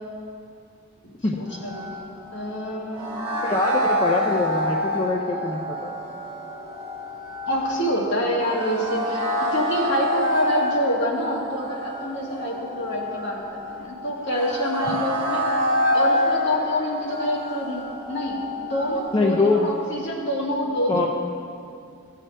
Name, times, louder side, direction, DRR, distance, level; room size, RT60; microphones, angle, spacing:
voice 1, 1.4-1.9 2.3-3.2 7.5-15.5 15.9-21.1, equal, 60° left, -3 dB, 1.6 m, -27 dB
sound 1, 1.5-19.9, left 1 dB, 25° right, 1.7 m, -27 dB
voice 2, 3.4-5.9 19.1-19.6 20.9-21.1, left 3 dB, 25° left, -1 dB, 0.5 m, -23 dB
13.5 x 7.4 x 3.3 m, 2.5 s
head